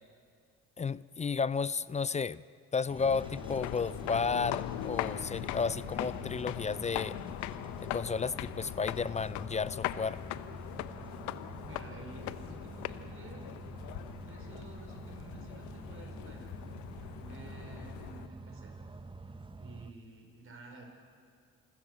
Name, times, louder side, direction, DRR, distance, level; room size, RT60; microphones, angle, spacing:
voice 1, 0.8-2.4 2.7-7.2 7.8-10.2, left 5 dB, 25° left, 19 dB, 0.4 m, -32 dB
sound 1, 2.9-19.9, right 3 dB, 15° right, 1.1 m, -47 dB
sound 2, 3.0-18.3, left 15 dB, 85° left, 0.7 m, -40 dB
voice 2, 11.6-13.5 14.1-16.7 17.0-18.8 19.5-20.8, right 3 dB, 45° right, 2 dB, 5.4 m, -52 dB
28.0 x 13.5 x 8.0 m, 2.3 s
supercardioid pair, 80°, 29 cm